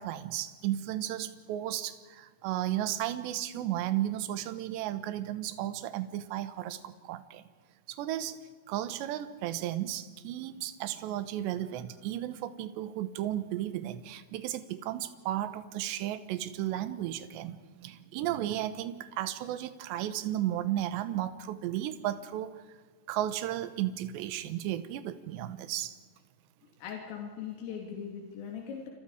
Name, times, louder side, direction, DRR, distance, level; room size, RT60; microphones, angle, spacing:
voice 1, 0.0-7.4 7.9-8.4 8.7-22.6 23.1-25.9, right 13 dB, 70° right, 12 dB, 3.0 m, -34 dB
voice 2, 26.8-28.9, left 7 dB, 75° left, 0 dB, 5.3 m, -40 dB
29.5 x 27.0 x 5.0 m, 1.4 s
omnidirectional pair, 6.0 m